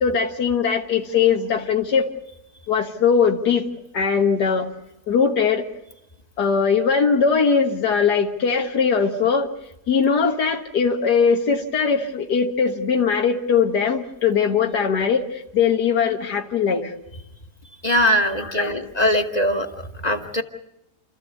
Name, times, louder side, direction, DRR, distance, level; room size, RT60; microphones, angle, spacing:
voice 1, 0.0-2.1 2.7-3.6 3.9-4.7 5.1-5.7 6.4-9.5 9.9-16.9 18.4-18.8, left 6 dB, 85° left, 3 dB, 2.0 m, -20 dB
voice 2, 17.8-19.7 20.0-20.4, equal, 30° left, 5 dB, 1.2 m, -21 dB
29.0 x 14.0 x 8.2 m, 0.91 s
omnidirectional pair, 1.7 m